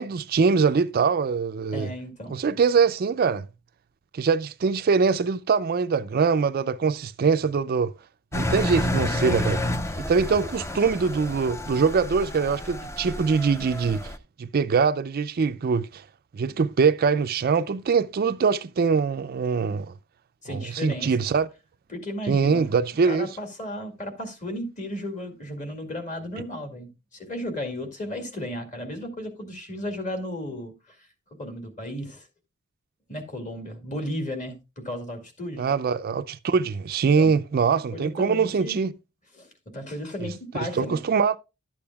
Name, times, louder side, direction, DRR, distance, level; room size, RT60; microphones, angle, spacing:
voice 1, 0.0-1.9 2.3-3.5 4.1-7.9 8.3-9.6 10.0-14.1 14.4-16.0 16.3-19.9 20.5-21.5 22.3-23.3 35.6-38.9 40.2-40.3 40.6-41.4, right 5 dB, 45° right, 0.4 m, -23 dB
voice 2, 1.7-2.3 20.4-21.1 21.9-22.7 23.0-31.1 31.4-32.3 33.1-35.7 37.2-37.3 37.6-37.7 37.9-38.8 39.3-41.0, left 1 dB, 35° left, 2.1 m, -34 dB
Engine, 8.3-14.2, left 1 dB, 15° left, 0.5 m, -30 dB
12.0 x 8.6 x 2.3 m
head